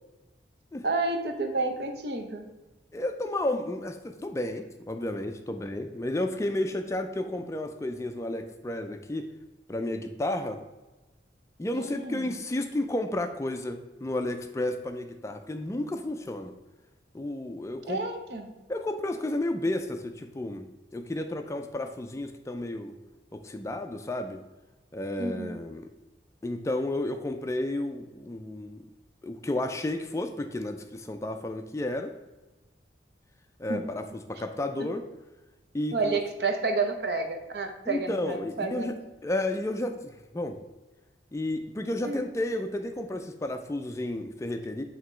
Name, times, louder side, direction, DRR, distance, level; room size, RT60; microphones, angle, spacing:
voice 1, 0.8-2.5 11.7-12.2 17.9-18.5 25.2-25.5 33.7-33.8 34.8-34.9 35.9-39.0 42.0-42.3, right 3 dB, 60° right, 5 dB, 0.8 m, -30 dB
voice 2, 2.9-9.3 9.7-10.6 11.6-16.5 17.1-18.0 18.7-22.9 23.3-24.4 24.9-25.9 26.4-28.8 29.2-32.1 33.6-35.1 35.7-36.2 37.9-38.9 39.2-40.6 41.3-44.8, left 1 dB, 15° left, 6 dB, 0.3 m, -32 dB
8.0 x 2.9 x 4.4 m, 1.1 s
head